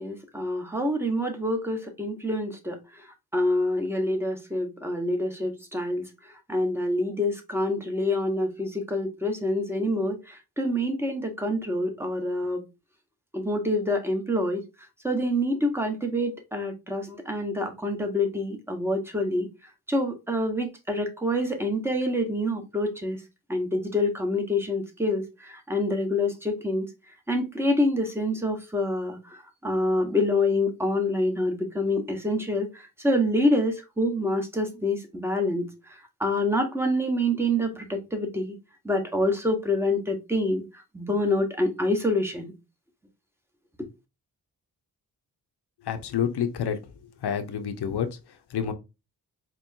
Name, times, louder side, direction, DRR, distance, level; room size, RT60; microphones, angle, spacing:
voice 1, 0.0-2.8 3.3-6.0 6.5-10.2 10.6-12.6 13.3-14.6 15.0-19.5 19.9-23.2 23.5-26.8 27.3-29.2 29.6-32.7 33.0-35.7 36.2-38.5 38.8-40.6 40.9-42.5, left 1 dB, 5° right, 1.2 m, -26 dB
voice 2, 45.8-46.8 47.2-48.1 48.5-48.7, left 8 dB, 80° left, 0.8 m, -28 dB
4.6 x 3.0 x 2.7 m
cardioid pair, 85°, 39 cm